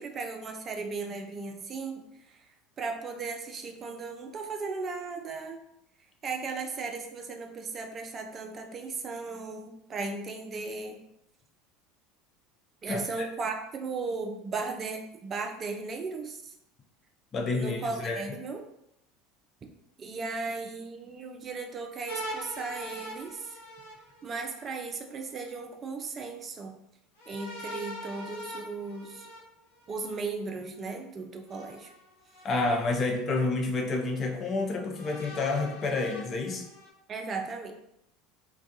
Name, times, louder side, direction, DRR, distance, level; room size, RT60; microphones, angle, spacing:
voice 1, 0.0-2.0 2.3-2.4 2.8-5.6 6.2-11.0 12.8-16.5 17.5-18.6 20.0-23.6 24.2-26.7 27.3-29.3 29.9-31.9 37.1-37.8, right 4 dB, 35° right, 4 dB, 0.4 m, -36 dB
voice 2, 12.9-13.3 17.3-18.2 32.4-36.6, left 3 dB, 35° left, 2 dB, 0.5 m, -29 dB
sound 1, 22.1-24.7 27.2-30.2 31.5-32.4 33.2-33.3 34.9-36.9, equal, 80° left, 0.8 m, -42 dB
2.3 x 2.3 x 2.6 m, 0.81 s
hypercardioid pair, 75°, 0 cm